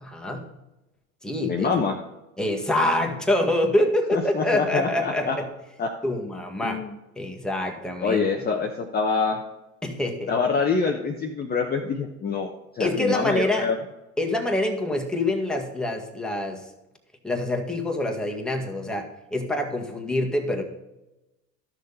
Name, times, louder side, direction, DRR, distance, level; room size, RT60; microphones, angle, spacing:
voice 1, 0.0-0.5 1.2-1.7 2.4-5.5 6.0-6.8 7.2-8.2 9.8-10.3 12.8-13.7 14.2-16.6 17.2-20.6, left 1 dB, ahead, 1 dB, 1.7 m, -26 dB
voice 2, 1.5-2.0 4.1-5.4 5.8-5.9 6.6-7.0 8.0-9.4 10.3-12.5 12.7-13.8, left 5 dB, 25° left, 2 dB, 1.0 m, -25 dB
12.5 x 6.5 x 4.1 m, 0.99 s
hypercardioid pair, 90°, 40 cm